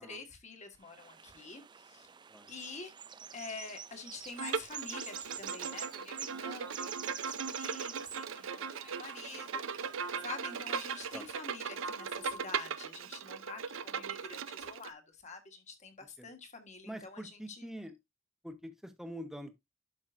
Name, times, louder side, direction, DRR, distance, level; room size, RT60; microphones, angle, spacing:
voice 1, 0.0-2.1 2.5-2.9 3.3-9.9 10.2-17.7, left 4 dB, 35° left, 1.6 m, -47 dB
sound 1, 0.8-11.4, right 8 dB, 25° right, 0.4 m, -47 dB
Bowed string instrument, 4.4-14.9, right 6 dB, 85° right, 0.6 m, -38 dB
voice 2, 16.8-17.9 18.4-19.5, equal, ahead, 1.0 m, -45 dB
12.0 x 5.7 x 2.6 m
head